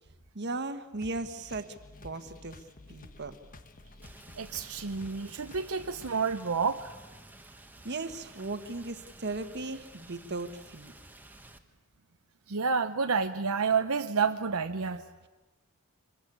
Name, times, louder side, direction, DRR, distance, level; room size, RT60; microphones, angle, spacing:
voice 1, 0.3-1.7 2.0-2.5 2.9-3.3 7.8-10.9, right 3 dB, 50° right, 10 dB, 1.4 m, -37 dB
sound 1, 1.0-6.4, left 2 dB, 40° left, 1.2 m, -52 dB
Rain, 4.0-11.6, right 2 dB, 10° right, 1.3 m, -52 dB
voice 2, 4.4-6.9 12.5-15.0, right 5 dB, 80° right, 7 dB, 0.8 m, -29 dB
25.0 x 21.5 x 8.6 m, 1.1 s
head